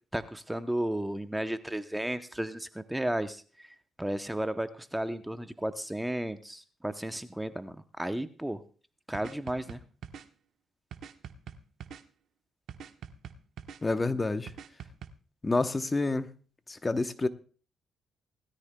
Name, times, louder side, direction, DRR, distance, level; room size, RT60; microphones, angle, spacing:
voice 1, 0.1-8.6 9.1-9.8, right 1 dB, 5° right, 0.7 m, -34 dB
sound 1, 9.1-10.2 10.9-12.0 12.7-13.8 14.5-15.1, right 8 dB, 70° right, 1.1 m, -44 dB
voice 2, 13.8-14.5 15.4-16.3 16.7-17.3, left 3 dB, 20° left, 0.9 m, -28 dB
20.0 x 13.0 x 2.2 m
cardioid pair, 90°, 0 cm